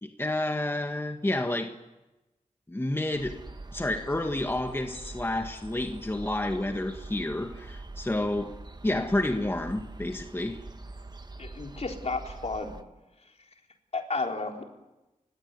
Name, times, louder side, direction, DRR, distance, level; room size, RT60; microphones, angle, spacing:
voice 1, 0.0-1.8 2.7-8.6 8.8-10.6, left 1 dB, 15° left, 1.6 m, -30 dB
sound 1, 3.1-12.8, right 2 dB, 30° right, 1.5 m, -44 dB
voice 2, 11.4-12.7 13.9-14.6, left 3 dB, 55° left, 4.0 m, -32 dB
29.5 x 17.0 x 9.7 m
wide cardioid pair, 70°, 13 cm